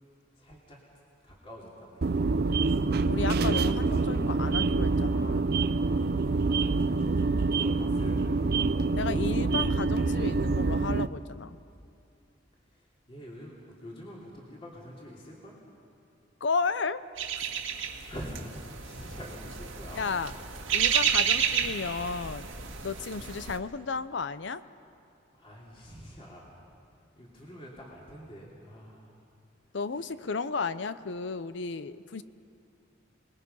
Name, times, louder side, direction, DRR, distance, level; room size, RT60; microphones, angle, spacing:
voice 1, 0.3-0.8 1.2-2.2 5.8-9.0 12.7-15.6 18.1-20.2 25.3-26.5 26.9-29.1 29.9-30.1, equal, 30° left, -4 dB, 3.0 m, -46 dB
sound 1, 2.0-11.1, right 3 dB, 55° right, 0.5 m, -26 dB
voice 2, 3.1-5.6 9.0-11.6 16.4-17.0 17.3-17.4 19.9-20.3 20.7-22.5 22.8-24.6 29.7-32.2, left 4 dB, 65° left, 14 dB, 0.6 m, -33 dB
sound 2, 17.2-23.6, right 8 dB, 85° right, 1.8 m, -31 dB
29.0 x 20.5 x 5.5 m, 2.5 s
head